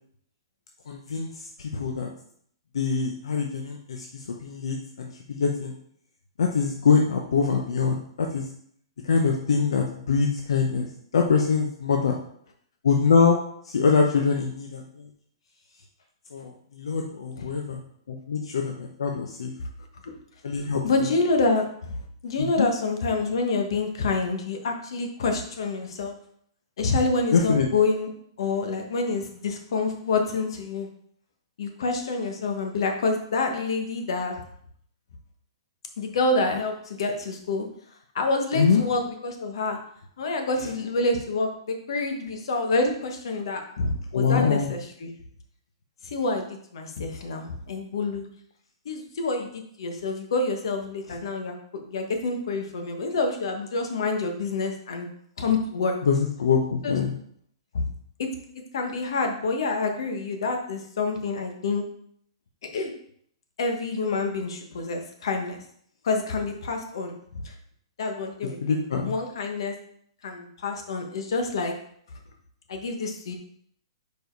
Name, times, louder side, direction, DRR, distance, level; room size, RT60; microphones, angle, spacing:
voice 1, 0.9-1.3 1.6-2.1 2.7-5.7 6.4-8.5 9.0-10.9 11.1-12.2 12.8-13.4 13.6-15.1 16.3-17.8 18.1-19.5 20.4-21.1 22.4-22.7 27.3-27.7 38.5-38.8 44.1-44.7 56.0-57.1 68.6-69.1, left 5 dB, 85° left, 2 dB, 0.8 m, -24 dB
voice 2, 20.8-22.0 22.2-26.1 26.8-28.1 28.4-30.9 31.6-34.3 36.0-37.6 38.1-39.8 40.2-45.1 46.0-46.5 46.7-48.2 48.8-55.1 55.4-56.0 56.8-57.0 57.7-57.8 58.2-58.3 58.7-61.8 62.7-62.9 63.6-65.6 66.0-67.2 67.4-67.5 68.0-69.7 70.2-71.7 72.7-73.4, left 3 dB, 65° left, 4 dB, 1.2 m, -27 dB
5.0 x 4.7 x 4.6 m, 0.66 s
hypercardioid pair, 160°, 3 cm